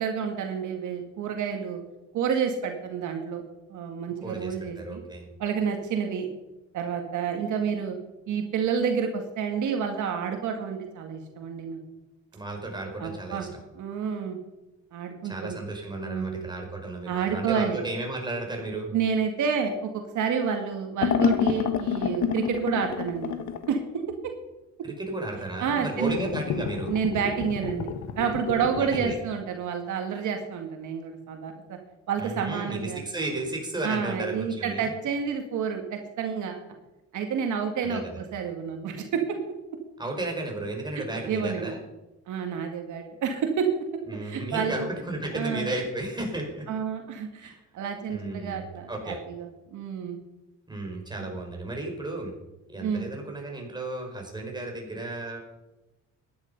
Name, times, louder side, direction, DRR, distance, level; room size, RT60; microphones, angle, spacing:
voice 1, 0.0-1.8 2.1-3.4 3.7-5.0 5.4-6.3 6.7-8.0 8.3-11.8 13.0-13.5 13.7-14.4 14.9-15.6 16.0-16.4 17.1-17.8 18.9-23.3 23.7-23.8 25.6-26.1 26.9-31.8 32.1-33.0 33.8-36.6 37.1-39.4 41.1-41.7 42.3-43.9 44.2-44.7 45.3-45.7 46.7-50.2 51.2-51.3 52.8-53.1, right 7 dB, 80° right, 4 dB, 2.0 m, -29 dB
voice 2, 4.2-5.3 12.3-13.5 15.2-18.9 24.8-26.9 28.8-29.2 32.2-34.9 37.8-38.2 40.0-41.8 44.1-46.6 47.4-47.6 48.1-49.2 50.7-52.3 52.7-55.4, right 2 dB, 15° right, 1 dB, 5.1 m, -33 dB
sound 1, 21.0-23.7 26.0-29.1, left 8 dB, 70° left, 1.3 m, -29 dB
14.5 x 10.5 x 5.4 m, 1.0 s
cardioid pair, 90°, 30 cm